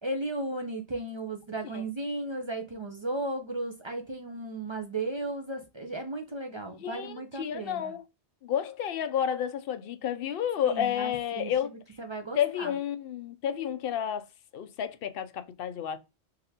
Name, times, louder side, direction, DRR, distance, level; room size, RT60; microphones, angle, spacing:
voice 1, 0.0-8.0 10.6-11.5 12.0-12.7, right 2 dB, 40° right, 0.4 m, -35 dB
voice 2, 6.8-8.0 8.4-11.7 12.3-14.2 14.5-16.0, left 9 dB, 65° left, 0.7 m, -31 dB
4.0 x 3.3 x 2.7 m
omnidirectional pair, 1.1 m